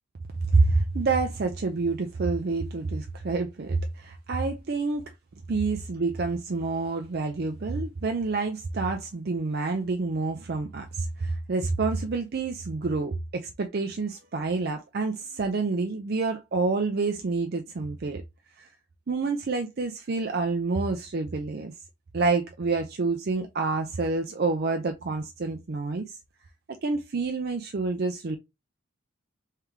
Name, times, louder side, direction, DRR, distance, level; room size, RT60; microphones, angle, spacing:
voice 1, 0.5-5.1 5.5-18.2 18.6-18.7 19.1-21.7 22.1-26.1 26.7-28.4, right 3 dB, 50° right, 0.5 m, -28 dB
3.3 x 3.0 x 3.6 m
head